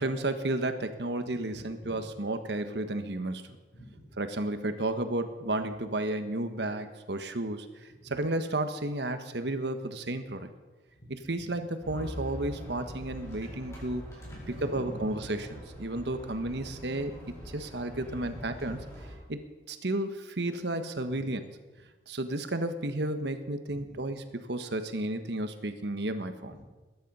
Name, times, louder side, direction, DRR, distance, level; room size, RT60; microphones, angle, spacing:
voice 1, 0.0-3.4 4.2-10.5 11.3-14.1 14.6-15.5 15.8-17.1 17.5-18.8 19.3-19.4 19.7-21.4 22.1-26.5, right 2 dB, 70° right, 9 dB, 1.3 m, -32 dB
voice 2, 1.5-2.0 3.7-4.2 8.0-8.1 11.0-11.1 14.2-15.3 18.3-18.7 21.1-21.3 23.7-24.0, equal, 50° left, 0 dB, 4.8 m, -45 dB
sound 1, 11.8-19.1, equal, 15° left, 4.8 m, -44 dB
20.5 x 10.5 x 5.5 m, 1.2 s
head